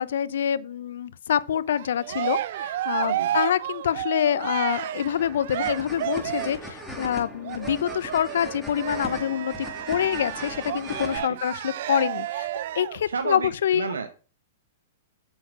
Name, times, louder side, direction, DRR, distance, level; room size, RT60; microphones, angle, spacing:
voice 1, 0.0-12.5 12.7-13.9, left 9 dB, 70° left, 0.7 m, -26 dB
Cheering, 1.7-6.7 7.4-13.0, right 12 dB, 60° right, 0.7 m, -31 dB
voice 2, 3.0-3.4 11.3-11.4 13.0-14.1, right 5 dB, 85° right, 1.1 m, -32 dB
sound 1, 5.2-11.2, left 1 dB, ahead, 5.1 m, -39 dB
8.9 x 7.3 x 6.0 m
hypercardioid pair, 115°, 0 cm